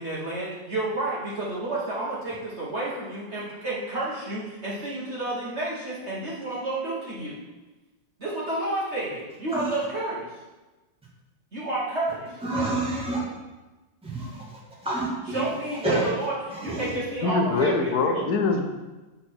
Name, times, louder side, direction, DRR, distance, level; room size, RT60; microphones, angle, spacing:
voice 1, 0.0-7.4 8.2-10.3 11.5-12.4 15.3-16.3 16.6-18.3, right 2 dB, 40° right, -7 dB, 1.4 m, -30 dB
voice 2, 12.4-13.2 14.0-14.4 14.8-15.4 15.8-16.1 16.5-17.0, right 2 dB, 5° right, -6 dB, 1.7 m, -28 dB
voice 3, 17.2-18.6, left 4 dB, 60° left, 3 dB, 1.2 m, -23 dB
7.7 x 4.4 x 4.4 m, 1.1 s
omnidirectional pair, 2.1 m